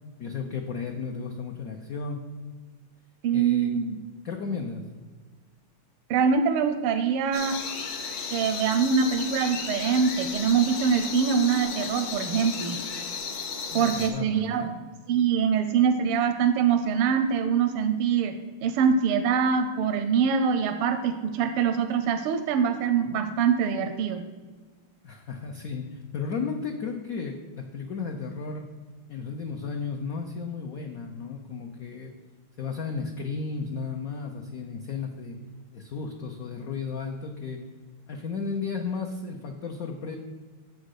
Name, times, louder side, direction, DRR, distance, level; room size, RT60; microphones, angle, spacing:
voice 1, 0.2-2.2 3.3-3.7 4.2-4.8 13.7-14.7 25.0-28.6 29.1-32.1 32.6-35.4 35.7-37.6 38.1-40.2, left 5 dB, 85° left, 3 dB, 0.7 m, -34 dB
voice 2, 3.2-4.0 6.1-7.6 8.3-12.8 13.7-14.7 15.1-18.3 18.6-24.2, right 6 dB, 85° right, 7 dB, 1.5 m, -24 dB
sound 1, 7.3-14.1, left 5 dB, 65° left, 1.6 m, -34 dB
7.5 x 5.2 x 6.3 m, 1.4 s
omnidirectional pair, 2.4 m